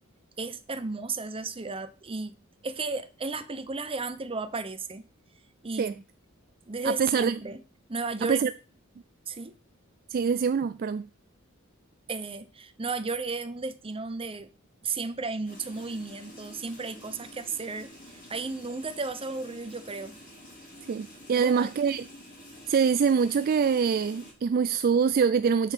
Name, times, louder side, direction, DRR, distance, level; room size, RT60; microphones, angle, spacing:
voice 1, 0.4-2.3 2.6-5.1 5.6-6.0 6.7-7.6 7.9-8.4 9.3-9.6 12.1-14.5 14.8-17.9 18.3-20.1 21.3-21.7, right 3 dB, 25° right, 0.8 m, -34 dB
voice 2, 6.8-7.3 8.2-8.5 10.1-11.1 20.9-22.0 22.7-25.7, right 6 dB, 45° right, 0.3 m, -24 dB
sound 1, 15.4-24.3, equal, 40° left, 4.5 m, -49 dB
7.8 x 6.7 x 5.7 m
head